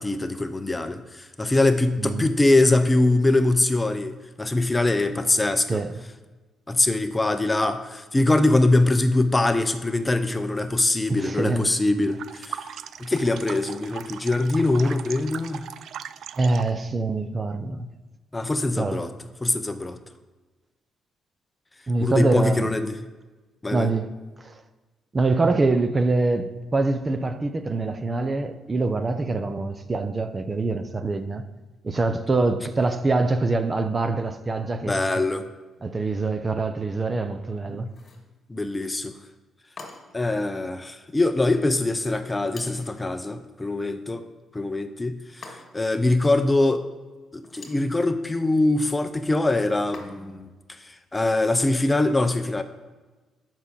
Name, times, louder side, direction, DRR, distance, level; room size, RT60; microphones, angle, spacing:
voice 1, 0.0-5.8 6.7-12.6 13.0-15.7 18.3-19.1 19.4-20.0 22.0-22.9 23.6-23.9 34.8-35.5 37.7-37.8 38.5-39.1 40.1-44.2 44.5-46.8 47.3-50.5 50.8-52.6, left 2 dB, 15° left, 0.7 m, -23 dB
voice 2, 5.7-6.0 11.1-11.7 14.8-15.0 16.4-17.9 18.8-19.1 21.9-22.7 23.7-24.1 24.4-24.6 25.1-31.4 31.8-35.3 35.8-37.9, right 3 dB, 30° right, 0.7 m, -25 dB
sound 1, 12.0-16.8, right 9 dB, 65° right, 0.4 m, -39 dB
sound 2, 37.9-38.3 39.8-40.3 42.5-43.0 45.4-46.0 47.4-47.9 49.9-50.5, left 3 dB, 45° left, 2.4 m, -44 dB
7.3 x 5.9 x 6.8 m
cardioid pair, 90°, 0 cm